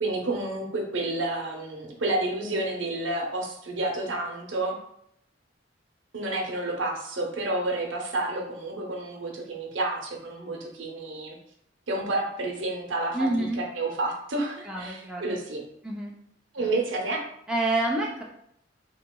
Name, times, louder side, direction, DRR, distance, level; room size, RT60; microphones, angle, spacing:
voice 1, 0.0-4.7 6.1-11.4 11.9-15.6 16.5-17.2, right 2 dB, 80° right, 0 dB, 0.7 m, -30 dB
voice 2, 13.1-13.6 14.6-15.4 15.8-16.1 16.6-16.7 17.5-18.2, right 2 dB, 5° right, -3 dB, 0.4 m, -28 dB
3.9 x 2.8 x 2.2 m, 0.73 s
head